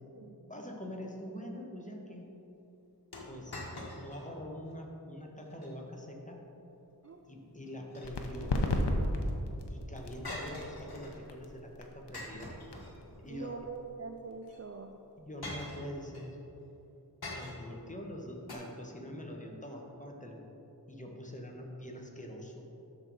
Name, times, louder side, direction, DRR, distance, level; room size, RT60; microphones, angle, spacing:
voice 1, 0.2-2.3 3.3-3.6 3.9-6.4 7.3-8.6 9.7-12.5 13.2-13.6 15.2-16.4 17.3-20.4 20.9-22.6, equal, 20° left, 0 dB, 1.1 m, -44 dB
sound 1, 3.1-4.3 4.7-4.8 5.4-5.7 7.6-8.5 10.2-11.2 12.1-13.3 14.4-14.6 15.4-16.3 17.2-17.8 18.5-18.6, left 1 dB, 65° left, 1.5 m, -44 dB
sound 2, 8.0-15.4, left 1 dB, 85° left, 0.8 m, -36 dB
voice 2, 13.3-15.0, right 5 dB, 40° right, 4 dB, 0.4 m, -44 dB
12.5 x 4.7 x 4.0 m, 2.9 s
wide cardioid pair, 60°, 40 cm